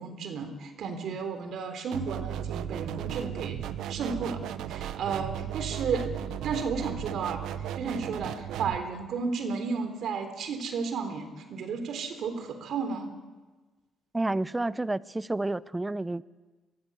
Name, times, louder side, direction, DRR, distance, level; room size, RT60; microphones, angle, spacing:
voice 1, 0.0-3.6 3.9-4.4 4.7-6.1 6.4-7.4 7.7-13.1, right 5 dB, 70° right, 3.6 m, -33 dB
sound 1, 1.9-8.8, right 10 dB, 85° right, 1.2 m, -35 dB
voice 2, 14.1-16.2, right 2 dB, 15° right, 0.8 m, -30 dB
27.0 x 23.0 x 8.1 m
cardioid pair, 90°, 0 cm